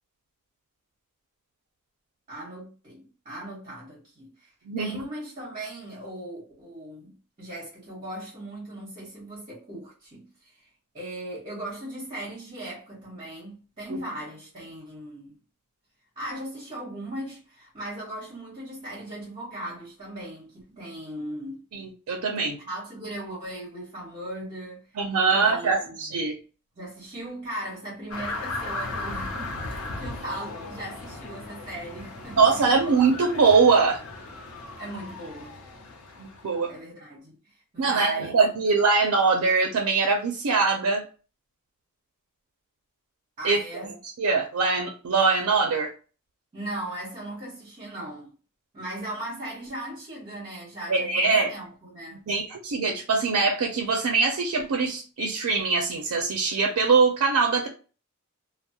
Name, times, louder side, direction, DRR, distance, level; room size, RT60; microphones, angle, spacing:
voice 1, 2.3-4.5 4.8-10.5 10.9-15.3 16.1-21.6 22.6-24.8 25.3-26.1 26.8-32.6 34.8-35.6 36.7-38.4 43.4-43.9 46.5-48.3 48.7-52.2, right 1 dB, 30° right, 1.1 m, -38 dB
voice 2, 4.7-5.0 21.7-22.6 25.0-26.3 32.4-34.0 36.2-36.7 37.8-41.0 43.4-43.6 44.2-45.9 50.9-51.5 52.3-57.7, right 4 dB, 85° right, 0.5 m, -22 dB
sound 1, 28.1-36.7, left 2 dB, 80° left, 0.5 m, -37 dB
2.3 x 2.0 x 2.7 m
head